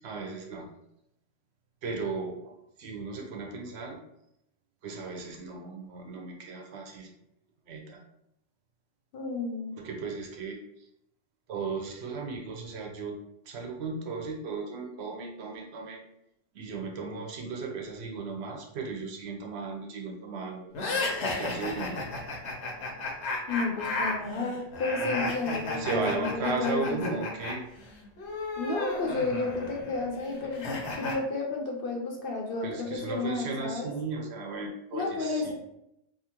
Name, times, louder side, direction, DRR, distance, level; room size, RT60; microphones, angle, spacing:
voice 1, 0.0-0.7 1.8-2.5 2.8-4.0 4.8-7.1 7.7-8.0 9.8-10.9 11.5-13.2 13.5-16.0 16.5-22.0 25.7-27.7 32.6-35.5, right 4 dB, 70° right, 1 dB, 0.8 m, -36 dB
voice 2, 9.1-9.8 23.5-27.2 28.6-33.9 34.9-35.5, left 3 dB, 60° left, 1 dB, 0.7 m, -32 dB
sound 1, 20.7-27.5 27.8-31.1, left 2 dB, 80° left, 1.0 m, -33 dB
2.7 x 2.4 x 2.8 m, 0.81 s
omnidirectional pair, 1.2 m